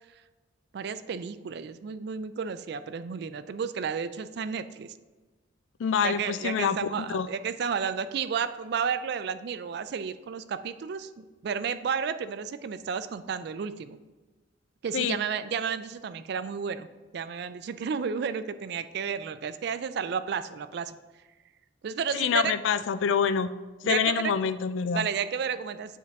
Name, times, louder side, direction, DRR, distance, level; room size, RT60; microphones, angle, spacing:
voice 1, 0.7-4.9 6.0-14.0 14.8-16.9 17.1-21.0 21.8-22.5 23.8-24.3 24.9-26.0, right 6 dB, 60° right, 12 dB, 0.3 m, -32 dB
voice 2, 5.8-6.8 7.1-7.3 14.9-15.2 22.1-23.5 23.9-25.1, left 7 dB, 85° left, 14 dB, 0.4 m, -26 dB
8.1 x 4.6 x 3.6 m, 1.3 s
head